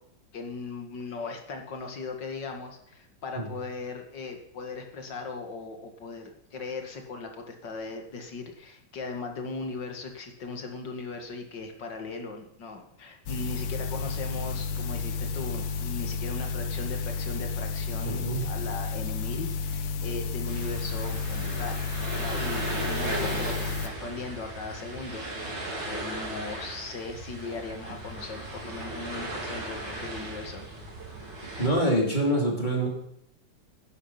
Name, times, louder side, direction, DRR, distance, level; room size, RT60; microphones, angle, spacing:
voice 1, 0.3-21.9 22.2-30.6, left 3 dB, 60° left, 4 dB, 2.3 m, -38 dB
sound 1, 13.3-23.9, left 4 dB, 85° left, 1.8 m, -32 dB
voice 2, 18.0-18.5 31.6-32.9, right 1 dB, 20° left, -1 dB, 3.0 m, -25 dB
sound 2, 20.5-31.7, right 1 dB, 75° right, 4.2 m, -36 dB
12.0 x 9.8 x 5.7 m, 0.72 s
omnidirectional pair, 2.1 m